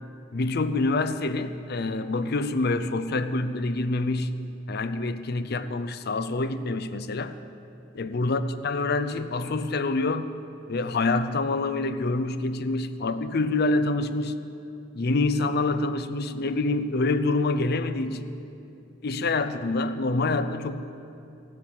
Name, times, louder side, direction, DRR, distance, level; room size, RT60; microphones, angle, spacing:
voice 1, 0.3-4.4 4.7-7.4 8.0-10.4 10.7-14.5 14.9-18.3 19.0-20.8, left 2 dB, 55° left, 11 dB, 0.6 m, -26 dB
15.5 x 7.8 x 7.3 m, 2.7 s
head